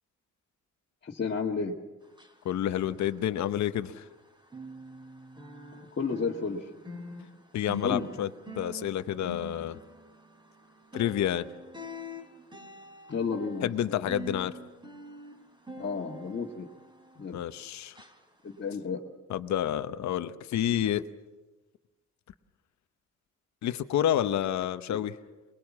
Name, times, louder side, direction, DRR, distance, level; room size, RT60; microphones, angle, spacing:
voice 1, 1.0-1.8 6.0-6.6 7.8-8.1 13.1-14.1 15.8-16.7 17.2-17.4 18.4-19.0 24.9-25.0, left 5 dB, 35° left, -4 dB, 1.8 m, -32 dB
sound 1, 2.0-4.2 4.5-17.6 17.9-18.2 18.7-18.8, left 1 dB, 15° right, 3.4 m, -45 dB
voice 2, 2.4-4.0 7.5-8.3 8.6-9.8 10.9-11.5 13.6-14.6 17.3-18.0 19.3-21.0 23.6-25.1, left 11 dB, 65° left, 11 dB, 0.9 m, -29 dB
22.0 x 21.0 x 7.4 m, 1.2 s
cardioid pair, 90°, 30 cm